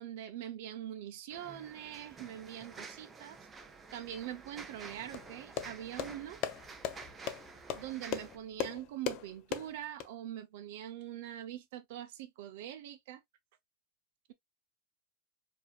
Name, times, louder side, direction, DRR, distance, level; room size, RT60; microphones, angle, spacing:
voice 1, 0.0-3.4 3.9-6.4 7.7-13.2, right 11 dB, 55° right, 0.7 m, -43 dB
sound 1, 1.3-8.4, right 4 dB, 15° right, 0.5 m, -50 dB
sound 2, 5.1-10.1, left 10 dB, 35° left, 0.5 m, -39 dB
4.8 x 2.7 x 2.3 m
supercardioid pair, 175°, 0 cm